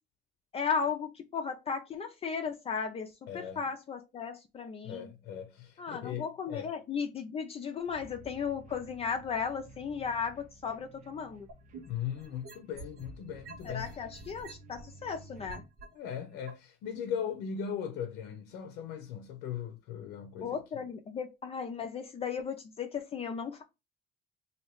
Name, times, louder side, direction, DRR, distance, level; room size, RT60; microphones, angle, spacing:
voice 1, 0.5-5.1 5.8-11.5 13.6-15.6 20.4-23.6, left 6 dB, 35° left, 0.4 m, -35 dB
voice 2, 3.3-3.6 4.8-6.7 11.9-14.0 15.9-20.6, left 8 dB, 90° left, 0.6 m, -38 dB
sound 1, 7.9-15.6, right 2 dB, 50° right, 0.7 m, -53 dB
sound 2, 11.5-13.1 13.5-15.9 16.5-16.6, right 3 dB, 80° right, 1.2 m, -47 dB
3.1 x 2.7 x 3.0 m
cardioid pair, 110°, 17 cm